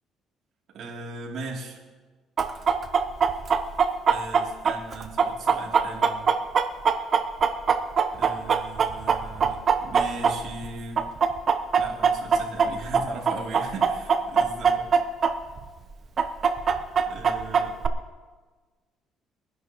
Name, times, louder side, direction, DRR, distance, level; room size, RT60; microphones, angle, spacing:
voice 1, 0.7-1.8 4.1-6.3 8.1-11.0 11.8-14.9 17.1-17.8, right 3 dB, 65° right, -2 dB, 3.0 m, -38 dB
Chicken rooster, 2.4-10.7 11.0-15.3 15.6-15.7 16.2-17.9, right 6 dB, 40° right, 0.8 m, -21 dB
22.5 x 11.0 x 3.0 m, 1.4 s
cardioid pair, 115°, 0 cm